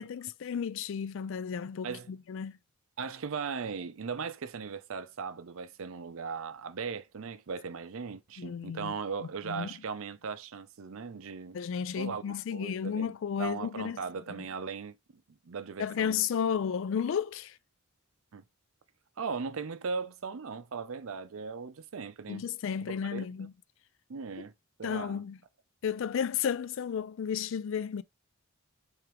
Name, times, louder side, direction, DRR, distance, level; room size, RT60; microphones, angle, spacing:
voice 1, 0.0-2.6 8.4-8.9 9.4-9.7 11.5-14.0 14.4-14.5 15.8-17.6 22.3-23.5 24.8-25.4 25.8-28.0, left 7 dB, 60° left, 0.3 m, -33 dB
voice 2, 3.0-11.6 12.0-14.9 15.3-16.2 18.3-18.4 19.2-22.4 22.9-23.5 24.1-24.5 24.8-25.2, right 5 dB, 65° right, 0.5 m, -38 dB
3.5 x 3.4 x 4.5 m
head